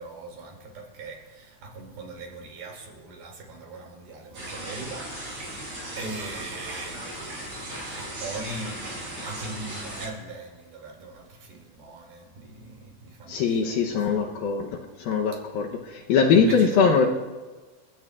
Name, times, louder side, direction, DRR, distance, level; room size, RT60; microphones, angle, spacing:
voice 1, 0.0-14.3 16.3-16.9, right 2 dB, 60° right, 1 dB, 4.1 m, -40 dB
sound 1, 4.3-10.1, right 1 dB, 35° right, 6.5 m, -37 dB
voice 2, 13.3-14.7 15.0-17.1, left 5 dB, 75° left, 1 dB, 2.2 m, -22 dB
29.5 x 17.0 x 2.5 m, 1.3 s
omnidirectional pair, 5.3 m